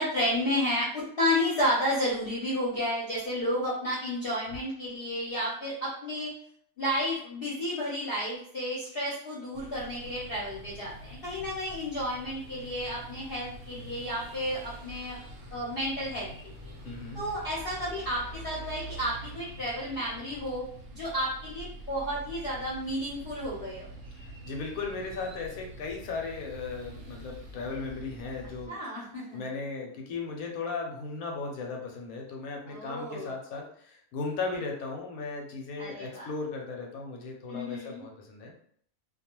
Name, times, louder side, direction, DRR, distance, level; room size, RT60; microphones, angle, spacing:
voice 1, 0.0-6.3 6.8-15.2 15.5-16.3 16.6-16.7 17.1-20.6 20.9-23.9 28.7-29.4 32.7-33.3 35.8-36.3 37.5-38.0, equal, 50° left, -7 dB, 0.8 m, -31 dB
sound 1, 9.5-28.7, right 1 dB, 65° right, 0.8 m, -46 dB
voice 2, 16.8-17.2 24.2-28.8 29.3-38.5, left 4 dB, 75° left, 1 dB, 1.0 m, -36 dB
2.4 x 2.3 x 2.9 m, 0.62 s
omnidirectional pair, 1.6 m